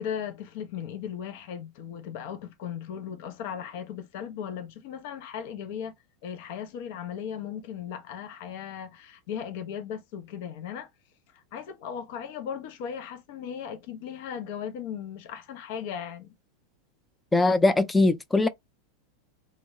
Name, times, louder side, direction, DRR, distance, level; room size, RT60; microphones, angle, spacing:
voice 1, 0.0-5.9 6.2-10.9 11.3-16.3, left 8 dB, 60° left, 0.5 m, -37 dB
voice 2, 17.3-18.5, left 2 dB, 10° left, 0.4 m, -21 dB
2.2 x 2.0 x 2.8 m
hypercardioid pair, 95°, 0 cm